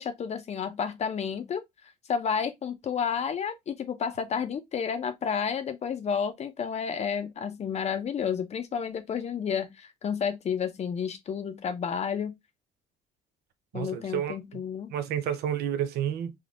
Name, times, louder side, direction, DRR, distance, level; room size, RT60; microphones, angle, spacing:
voice 1, 0.0-1.6 2.1-12.3 13.7-14.9, left 7 dB, 40° left, 0.6 m, -31 dB
voice 2, 13.7-14.4 14.9-16.3, right 9 dB, 75° right, 0.5 m, -30 dB
3.5 x 2.4 x 2.4 m
cardioid pair, 110°, 17 cm